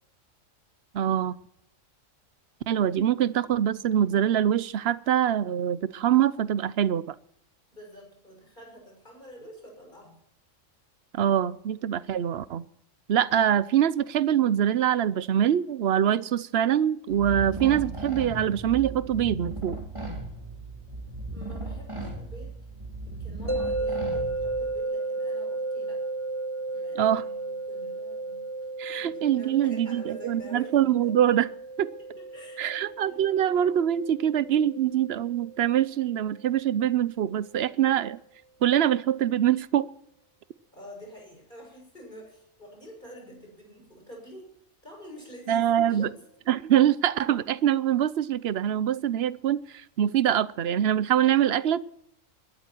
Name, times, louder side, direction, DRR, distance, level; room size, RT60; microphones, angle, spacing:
voice 1, 0.9-1.4 2.7-7.1 11.1-12.6 13.1-19.8 27.0-27.2 28.8-31.5 31.8-31.9 32.6-38.2 38.6-39.9 45.5-46.1 46.5-49.6 50.0-51.8, right 10 dB, 55° right, 0.9 m, -24 dB
voice 2, 7.7-10.2 21.3-22.6 23.0-26.0 26.7-28.4 28.9-30.7 31.0-31.1 32.0-33.2 40.7-44.5 44.8-46.2, equal, 35° left, 6.8 m, -47 dB
sound 1, 17.1-24.8, right 2 dB, 20° right, 3.7 m, -36 dB
sound 2, 23.5-36.5, right 2 dB, 10° left, 1.1 m, -34 dB
21.0 x 13.0 x 4.5 m
omnidirectional pair, 1.4 m